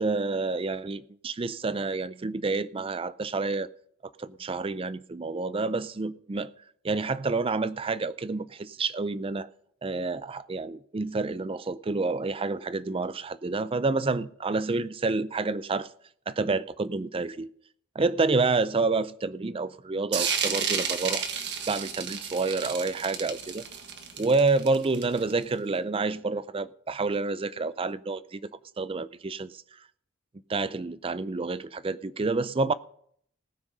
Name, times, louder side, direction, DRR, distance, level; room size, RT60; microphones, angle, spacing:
voice 1, 0.0-3.7 4.2-6.5 6.8-9.5 9.8-15.9 16.3-17.5 18.0-21.3 21.7-23.6 24.2-28.4 28.8-29.6 30.5-32.7, right 3 dB, 25° right, 0.4 m, -28 dB
sound 1, 20.1-25.4, right 7 dB, 50° right, 1.6 m, -31 dB
18.5 x 6.3 x 5.4 m
head